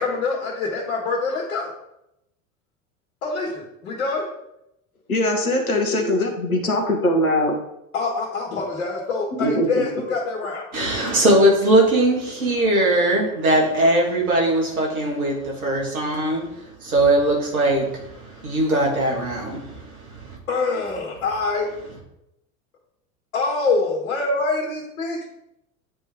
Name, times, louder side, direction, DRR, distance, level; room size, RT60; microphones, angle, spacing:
voice 1, 0.0-1.7 3.2-4.3 7.9-10.7 20.5-21.7 23.3-25.2, left 3 dB, 70° left, -5 dB, 2.0 m, -25 dB
voice 2, 5.1-7.5 9.4-9.8, left 1 dB, 85° left, 2 dB, 1.3 m, -21 dB
voice 3, 10.7-20.4, right 1 dB, 80° right, -2 dB, 2.1 m, -20 dB
9.4 x 3.4 x 3.7 m, 0.82 s
figure-of-eight pair, 80°, 42 cm